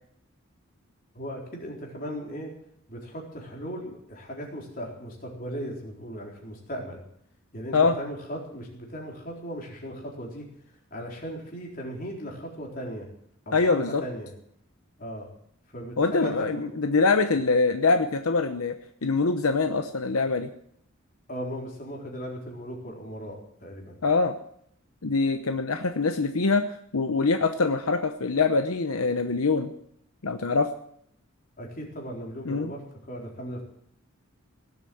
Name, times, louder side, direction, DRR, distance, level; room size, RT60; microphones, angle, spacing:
voice 1, 1.1-2.5 2.9-7.0 7.5-13.1 13.5-14.3 15.0-15.3 15.7-16.7 21.3-24.0 31.6-33.6, equal, 40° left, -1 dB, 4.1 m, -37 dB
voice 2, 13.5-14.0 16.0-18.7 19.0-20.5 24.0-24.4 25.0-26.7 26.9-29.7 30.2-30.7 32.5-32.7, left 4 dB, 80° left, 7 dB, 0.9 m, -24 dB
18.0 x 8.3 x 7.8 m, 0.70 s
head